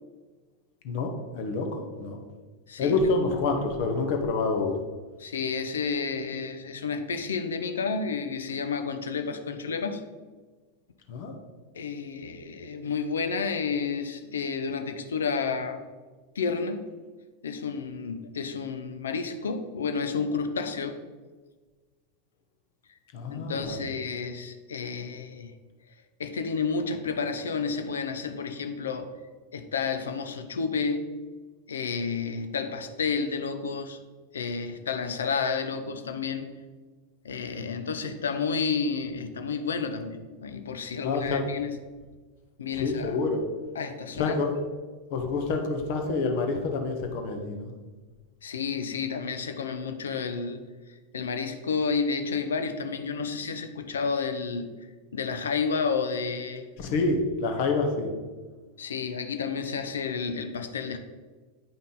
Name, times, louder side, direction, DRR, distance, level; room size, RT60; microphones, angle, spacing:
voice 1, 0.8-2.2 2.8-4.8 11.1-11.3 23.1-23.8 41.0-41.4 42.7-43.4 44.2-44.6 45.1-47.7 56.8-58.1, left 3 dB, 50° left, 4 dB, 1.2 m, -27 dB
voice 2, 2.7-3.1 5.2-10.0 11.7-15.8 16.3-16.9 17.4-21.0 23.3-25.6 26.2-29.1 29.5-31.1 31.7-34.0 34.3-36.5 37.2-41.8 42.6-43.2 43.7-44.4 48.4-50.6 51.1-54.8 55.1-56.7 58.8-61.0, left 5 dB, 65° left, 8 dB, 0.6 m, -31 dB
8.9 x 5.4 x 3.9 m, 1.4 s
figure-of-eight pair, 90°, 0 cm